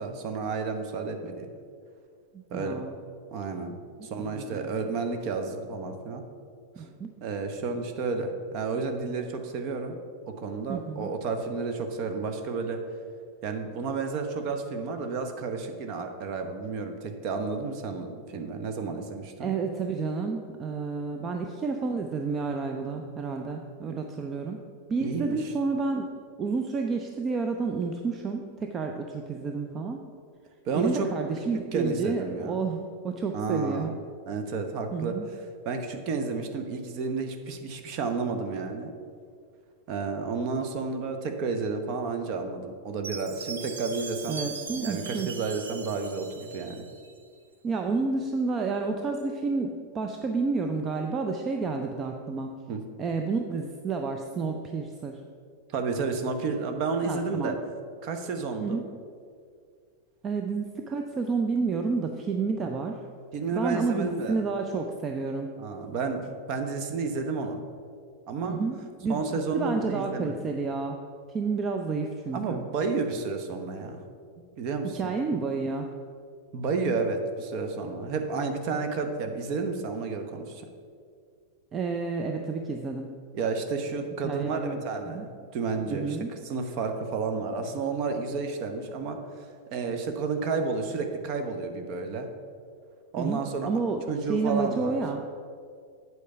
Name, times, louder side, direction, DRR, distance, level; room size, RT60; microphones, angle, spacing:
voice 1, 0.0-1.5 2.5-2.9 3.3-6.2 6.8-6.9 7.2-10.0 10.3-12.8 13.4-19.5 25.0-25.4 30.6-31.1 31.7-32.6 33.3-33.9 34.3-35.2 35.6-38.9 39.9-44.4 44.7-46.8 52.7-52.8 55.7-57.6 58.0-58.8 63.3-64.4 65.6-67.6 68.3-68.6 69.1-70.5 72.3-74.0 74.6-75.1 76.5-80.7 83.3-85.3 85.5-86.2 86.4-92.3 93.1-93.7 94.1-95.0, right 4 dB, 40° right, 6 dB, 0.9 m, -31 dB
voice 2, 2.5-2.9 4.2-4.7 6.8-7.1 10.7-11.1 19.4-24.6 24.9-26.1 26.4-30.0 30.8-33.9 34.9-35.3 44.3-45.3 47.6-52.6 53.0-55.2 57.0-57.6 58.6-58.8 60.2-63.0 63.5-65.5 68.4-71.0 71.3-72.6 74.8-75.9 81.7-83.1 84.2-84.8 85.1-85.3 85.9-86.3 93.2-95.2, right 4 dB, 25° right, 4 dB, 0.5 m, -30 dB
Chime, 43.0-47.2, right 5 dB, 65° right, 0.8 m, -40 dB
8.3 x 4.7 x 6.8 m, 2.2 s
figure-of-eight pair, 90°, 0 cm